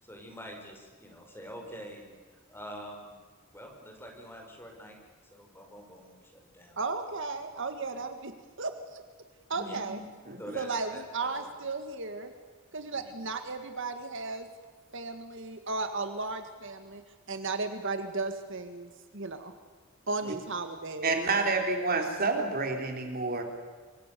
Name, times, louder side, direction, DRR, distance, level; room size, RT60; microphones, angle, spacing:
voice 1, 0.0-2.1 2.5-3.1 3.5-5.0 5.3-6.8 9.7-9.8 10.4-11.5 12.9-13.1 20.2-20.3, equal, 10° left, 2 dB, 5.6 m, -46 dB
voice 2, 6.8-8.3 8.6-9.0 9.5-10.0 10.6-12.3 12.7-14.5 14.9-17.0 17.3-19.5 20.1-21.2, right 3 dB, 60° right, 8 dB, 1.8 m, -35 dB
voice 3, 9.6-10.0 10.3-10.6 21.0-23.4, right 3 dB, 45° right, 3 dB, 3.6 m, -29 dB
27.0 x 24.0 x 6.9 m, 1.5 s
head